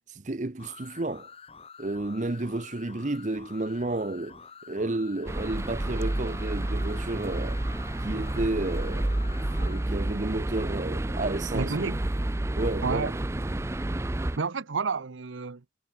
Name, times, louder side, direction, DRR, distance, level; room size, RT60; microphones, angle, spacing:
voice 1, 0.1-1.3 1.8-4.4 4.7-7.6 8.0-11.8 12.6-13.1, right 2 dB, 40° right, 0.8 m, -31 dB
sound 1, 0.6-9.9, left 6 dB, 30° left, 1.7 m, -48 dB
sound 2, 5.3-14.4, right 1 dB, 15° right, 0.4 m, -30 dB
voice 2, 11.5-12.0 12.8-13.2 14.4-15.6, right 4 dB, 90° right, 0.8 m, -30 dB
head